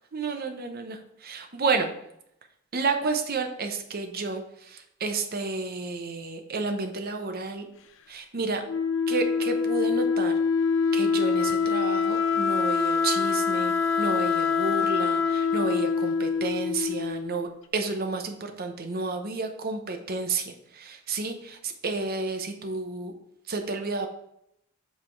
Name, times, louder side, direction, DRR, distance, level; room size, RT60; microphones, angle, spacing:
voice 1, 0.1-1.9 2.7-7.7 8.1-8.6 9.1-10.3 10.9-23.1 23.5-24.1, right 3 dB, 45° right, 6 dB, 0.8 m, -31 dB
Wind instrument woodwind instrument, 8.7-17.4, left 5 dB, 60° left, 0.5 m, -25 dB
7.6 x 3.4 x 4.5 m, 0.76 s
head